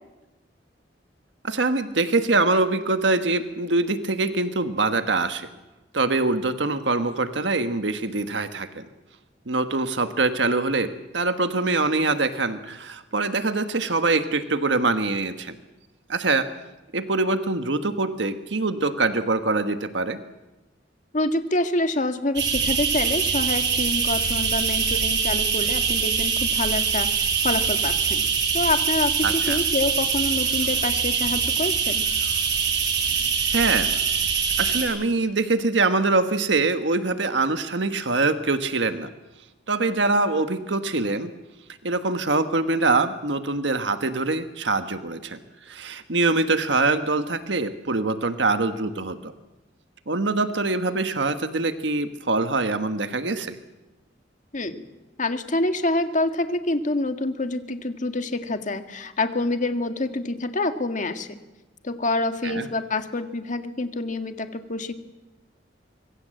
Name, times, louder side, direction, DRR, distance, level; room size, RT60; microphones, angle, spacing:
voice 1, 1.4-5.5 5.9-8.9 9.5-15.6 16.1-16.5 16.9-20.2 29.2-29.6 33.5-33.9 34.6-39.1 39.7-41.3 41.8-45.4 45.7-49.3 50.1-53.6 62.4-62.7, right 3 dB, 85° right, 9 dB, 1.4 m, -24 dB
voice 2, 21.1-28.2 28.5-32.1 54.5-54.8 55.2-61.4 61.8-65.0, left 2 dB, 45° left, 7 dB, 1.9 m, -27 dB
sound 1, 22.4-34.8, right 6 dB, 70° right, 6.7 m, -23 dB
25.5 x 23.5 x 7.7 m, 1.1 s
head